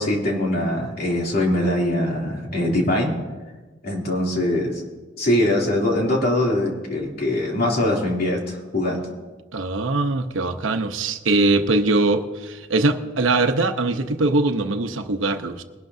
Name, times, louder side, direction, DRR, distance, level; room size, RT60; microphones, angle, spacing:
voice 1, 0.0-3.1 3.8-4.8 5.2-9.0, left 1 dB, 50° left, 2.9 m, -22 dB
voice 2, 9.5-15.6, right 2 dB, 90° right, 0.9 m, -21 dB
21.0 x 11.5 x 2.7 m
head